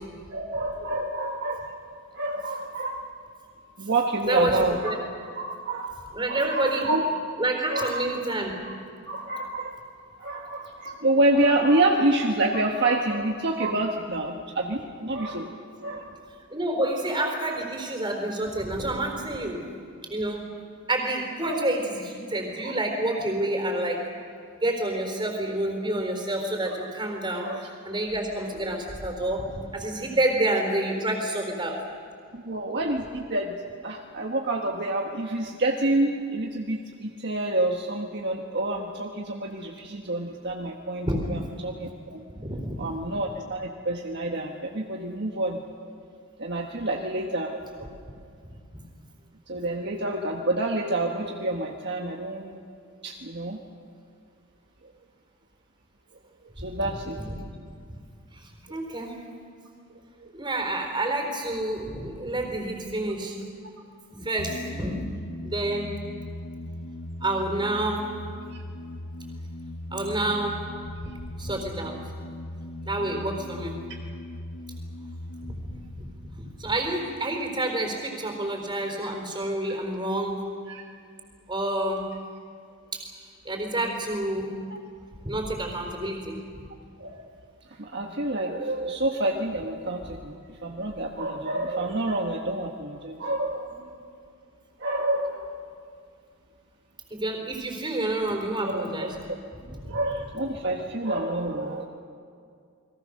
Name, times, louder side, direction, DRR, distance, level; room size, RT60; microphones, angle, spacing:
voice 1, 0.3-1.7 2.1-3.1 3.8-4.9 5.3-6.0 6.3-7.0 7.7-8.0 8.6-8.8 9.1-9.8 10.2-15.5 15.8-16.2 21.4-21.7 22.6-22.7 26.8-26.9 27.4-27.6 32.3-33.6 33.8-42.2 42.8-45.6 46.4-47.6 49.5-52.6 53.0-53.6 54.8-54.9 56.6-57.2 60.2-60.3 80.7-80.8 87.0-87.3 87.7-93.7 94.8-95.5 98.6-99.1 99.8-101.8, right 2 dB, 50° right, 1 dB, 1.4 m, -28 dB
voice 2, 4.3-5.0 6.1-6.9 7.4-8.6 16.5-19.6 20.1-20.4 20.9-24.0 24.5-31.8 41.1-41.3 42.3-43.0 48.7-48.8 56.8-56.9 57.3-57.4 57.6-57.7 58.3-59.2 60.3-63.4 64.1-65.0 65.4-65.9 67.2-68.1 69.9-70.6 71.4-72.0 72.8-73.8 75.5-75.7 76.0-80.5 81.5-82.0 82.9-83.0 83.4-84.5 85.2-86.4 97.1-99.2 99.5-99.9, right 1 dB, 20° right, 3 dB, 4.1 m, -28 dB
sound 1, 64.4-77.6, left 1 dB, 85° left, 1.0 m, -39 dB
30.0 x 22.0 x 6.6 m, 2.3 s
head